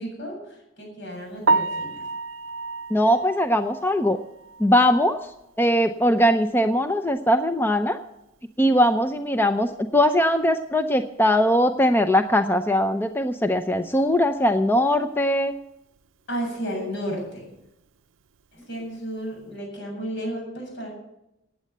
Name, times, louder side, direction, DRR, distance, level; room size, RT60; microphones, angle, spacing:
voice 1, 0.0-2.1 16.3-17.5 18.5-20.9, equal, 65° left, 1 dB, 7.5 m, -33 dB
Piano, 1.4-5.4 5.8-5.9 6.4-6.5 6.8-6.9 10.0-10.1 18.6-18.9, right 3 dB, 85° right, 0.6 m, -29 dB
voice 2, 2.9-4.2 4.6-5.2 5.6-8.0 8.6-15.5, equal, 10° left, 8 dB, 0.6 m, -20 dB
16.0 x 9.3 x 6.7 m, 0.86 s
head